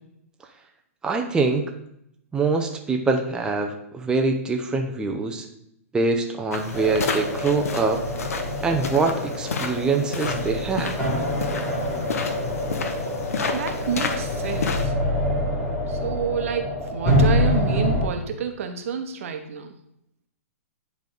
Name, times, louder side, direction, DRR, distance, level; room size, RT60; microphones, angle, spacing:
voice 1, 1.0-1.7 2.3-5.5 5.9-8.0 8.6-10.9, right 3 dB, 10° right, 3 dB, 0.6 m, -24 dB
sound 1, 6.5-14.9, left 5 dB, 75° left, 0.9 m, -31 dB
sound 2, 6.7-18.1, left 1 dB, 15° left, 2.4 m, -26 dB
voice 2, 13.5-14.9 15.9-19.8, right 7 dB, 65° right, 6 dB, 1.0 m, -29 dB
10.0 x 3.5 x 3.9 m, 0.76 s
hypercardioid pair, 130°, 8 cm